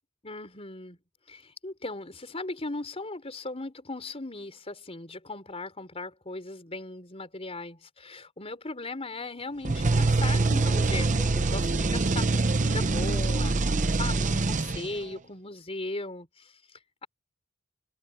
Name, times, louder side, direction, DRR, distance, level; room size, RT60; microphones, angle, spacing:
voice 1, 0.2-1.0 1.3-17.1, left 2 dB, 25° left, 4.5 m, -38 dB
sound 1, 9.6-15.1, right 3 dB, 35° right, 0.7 m, -25 dB
head